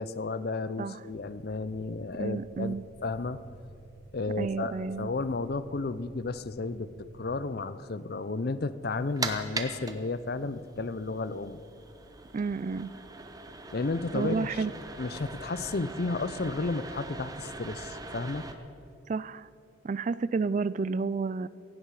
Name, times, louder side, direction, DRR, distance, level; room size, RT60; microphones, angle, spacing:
voice 1, 0.0-2.7 3.0-3.4 4.1-6.9 7.1-11.6 13.7-14.6 15.0-18.5, left 3 dB, 50° left, 15 dB, 0.5 m, -33 dB
sound 1, 1.1-7.5, right 2 dB, 60° right, 0.8 m, -54 dB
voice 2, 2.2-2.8 4.4-5.1 12.3-12.9 14.1-14.7 19.1-19.5 19.8-21.5, right 4 dB, 40° right, 18 dB, 0.3 m, -30 dB
sound 2, 8.8-18.5, right 3 dB, 20° right, 0.9 m, -41 dB
17.0 x 16.0 x 4.8 m, 2.8 s
head